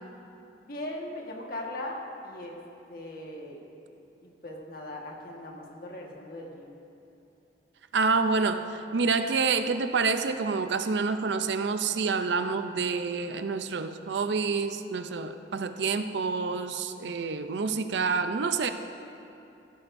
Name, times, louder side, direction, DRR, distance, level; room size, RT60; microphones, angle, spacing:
voice 1, 0.6-2.6 2.9-3.6 4.2-6.7, left 1 dB, 55° left, -1 dB, 1.5 m, -39 dB
voice 2, 7.9-18.7, right 4 dB, 70° right, 9 dB, 0.5 m, -28 dB
15.5 x 12.5 x 2.6 m, 2.8 s
head